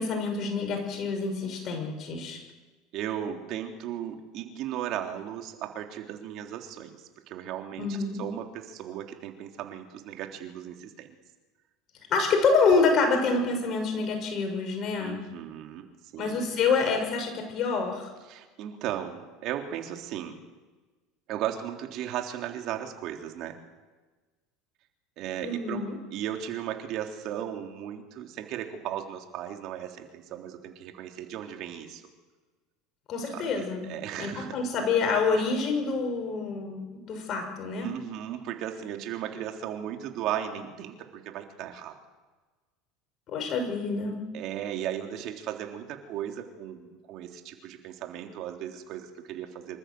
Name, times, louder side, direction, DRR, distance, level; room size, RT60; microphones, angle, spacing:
voice 1, 0.0-2.4 7.8-8.2 12.1-15.2 16.2-18.1 25.4-26.0 33.1-33.9 34.2-37.9 43.3-44.2, left 4 dB, 45° left, 5 dB, 6.3 m, -27 dB
voice 2, 2.9-11.1 15.0-15.9 16.1-16.6 18.3-20.4 21.3-23.6 25.2-32.0 33.3-34.6 35.3-35.5 37.8-42.0 44.3-49.8, right 10 dB, 60° right, 4 dB, 3.5 m, -36 dB
26.5 x 14.0 x 7.9 m, 1.3 s
supercardioid pair, 95°, 0 cm